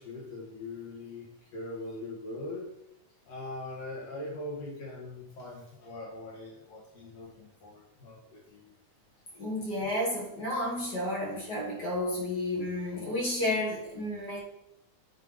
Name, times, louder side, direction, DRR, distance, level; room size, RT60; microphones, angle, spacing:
voice 1, 0.0-2.7 3.2-8.7, left 2 dB, 60° left, -3 dB, 2.6 m, -41 dB
voice 2, 9.3-14.4, left 1 dB, 40° left, -3 dB, 1.8 m, -31 dB
9.3 x 3.3 x 5.2 m, 0.81 s
omnidirectional pair, 3.5 m